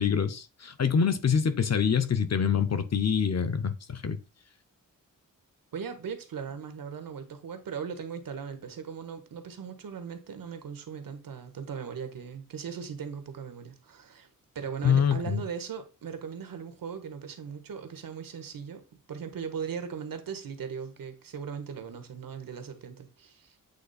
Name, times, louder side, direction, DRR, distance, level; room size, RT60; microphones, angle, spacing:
voice 1, 0.0-4.2 14.8-15.4, left 7 dB, 50° left, 0.8 m, -25 dB
voice 2, 5.7-14.3 14.5-18.8 19.1-23.5, right 6 dB, 85° right, 1.3 m, -38 dB
8.3 x 3.1 x 4.1 m
cardioid pair, 75°, 33 cm